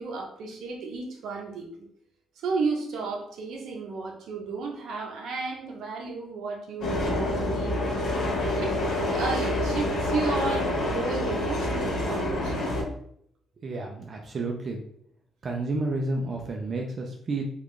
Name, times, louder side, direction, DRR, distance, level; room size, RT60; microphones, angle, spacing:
voice 1, 0.0-1.9 2.4-7.9 8.6-12.7, right 4 dB, 70° right, 1 dB, 0.8 m, -33 dB
sound 1, 6.8-12.8, left 1 dB, 80° left, 1.3 m, -27 dB
voice 2, 13.6-14.8 15.4-17.4, right 2 dB, 35° right, 0 dB, 0.4 m, -31 dB
3.6 x 2.4 x 3.2 m, 0.68 s
cardioid pair, 165°, 0 cm